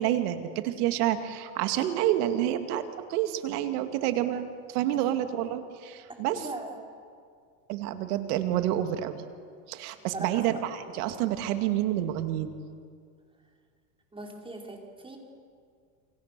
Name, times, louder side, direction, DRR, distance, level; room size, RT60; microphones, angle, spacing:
voice 1, 0.0-2.8 3.1-4.4 4.7-6.5 7.7-9.3 9.7-12.6, right 12 dB, 75° right, 8 dB, 2.3 m, -28 dB
voice 2, 6.1-6.7 10.1-10.6 14.1-15.2, right 2 dB, 10° right, 1 dB, 5.0 m, -40 dB
28.0 x 27.0 x 6.8 m, 2.2 s
supercardioid pair, 120°, 46 cm